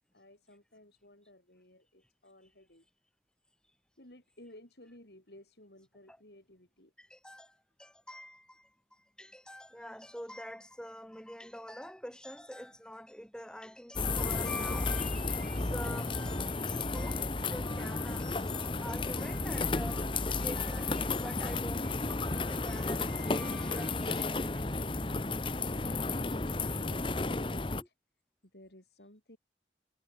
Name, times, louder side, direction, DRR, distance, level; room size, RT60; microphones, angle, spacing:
voice 1, 0.0-2.9 4.0-6.9 25.9-27.9 28.4-29.4, left 1 dB, 70° left, 6.8 m, -55 dB
voice 2, 7.0-24.8, equal, 5° left, 2.8 m, -46 dB
sound 1, 14.0-27.8, left 3 dB, 30° left, 0.9 m, -33 dB
head